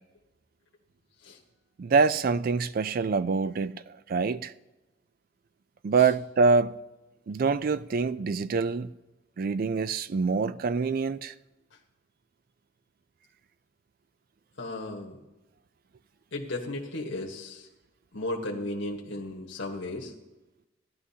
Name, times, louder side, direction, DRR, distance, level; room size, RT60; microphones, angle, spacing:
voice 1, 1.8-3.7 4.1-4.5 5.8-6.8 7.3-8.9 9.4-11.3, right 4 dB, 50° right, 0.4 m, -25 dB
voice 2, 14.6-15.2 16.3-17.7 18.1-20.1, left 2 dB, 80° left, 1.3 m, -35 dB
16.0 x 11.0 x 2.8 m
head